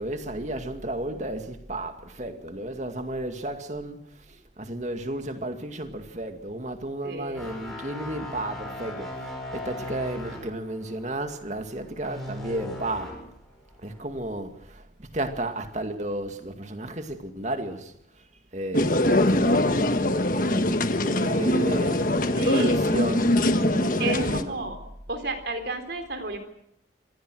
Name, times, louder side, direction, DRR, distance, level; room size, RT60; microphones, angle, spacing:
voice 1, 0.0-13.2 13.8-18.3 18.5-22.1 22.4-24.7, right 1 dB, 35° right, 2.2 m, -33 dB
voice 2, 7.0-7.4 22.3-22.8 24.0-24.8 25.1-26.4, right 2 dB, 60° right, 3.7 m, -31 dB
sound 1, 7.3-13.3 13.7-14.0, left 1 dB, ahead, 7.7 m, -38 dB
sound 2, 18.7-24.4, left 1 dB, 45° left, 1.5 m, -22 dB
26.5 x 20.5 x 6.4 m
head